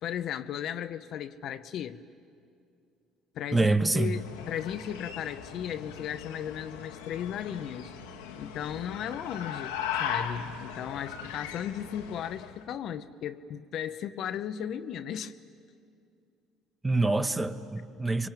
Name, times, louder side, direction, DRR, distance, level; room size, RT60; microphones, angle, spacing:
voice 1, 0.0-2.0 3.3-3.7 3.9-7.9 8.4-15.3, left 9 dB, 60° left, 9 dB, 0.9 m, -36 dB
voice 2, 3.5-4.2 16.8-18.3, right 2 dB, 20° right, 8 dB, 1.4 m, -26 dB
sound 1, 4.0-12.6, left 7 dB, 85° left, 1.5 m, -38 dB
26.5 x 23.5 x 9.1 m, 2.4 s
hypercardioid pair, 65°, 0 cm